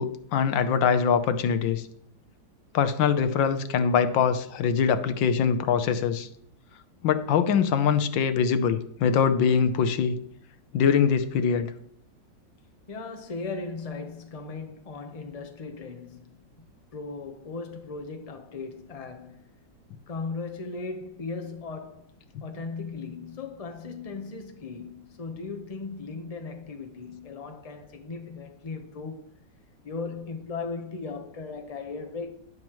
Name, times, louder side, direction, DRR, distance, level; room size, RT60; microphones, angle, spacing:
voice 1, 0.0-1.8 2.7-6.3 7.0-10.2 10.7-11.7, left 7 dB, 85° left, 1.5 m, -23 dB
voice 2, 12.9-16.4 16.9-19.5 20.1-29.3 29.8-32.3, left 4 dB, 25° left, 1.0 m, -37 dB
11.5 x 10.5 x 3.1 m
omnidirectional pair, 2.0 m